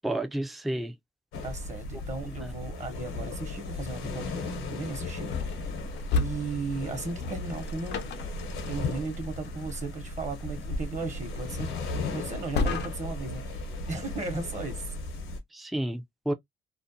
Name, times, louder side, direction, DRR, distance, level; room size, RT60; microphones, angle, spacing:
voice 1, 0.0-0.9 2.4-2.5 15.5-16.3, right 1 dB, ahead, 0.4 m, -31 dB
sound 1, 1.3-15.4, left 3 dB, 80° left, 0.9 m, -36 dB
voice 2, 1.4-5.7 6.1-8.1 8.6-15.0, right 3 dB, 35° right, 0.9 m, -36 dB
sound 2, 5.3-13.3, left 3 dB, 60° left, 0.5 m, -35 dB
2.5 x 2.1 x 2.5 m
cardioid pair, 90°, 20 cm